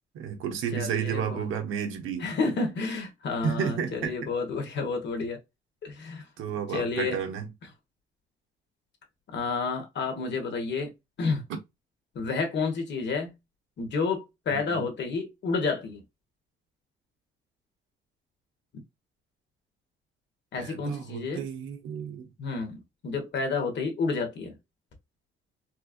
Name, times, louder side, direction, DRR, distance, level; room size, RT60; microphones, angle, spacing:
voice 1, 0.1-2.2 3.4-4.1 6.4-7.5 14.5-14.8 20.6-22.3, right 7 dB, 85° right, 1.0 m, -32 dB
voice 2, 0.7-1.5 2.2-5.4 5.8-6.3 6.7-7.2 9.3-10.9 11.2-11.4 12.1-13.3 13.8-16.0 20.5-21.4 22.4-24.6, left 4 dB, 60° left, 1.4 m, -30 dB
4.3 x 2.4 x 2.5 m
cardioid pair, 90°, 20 cm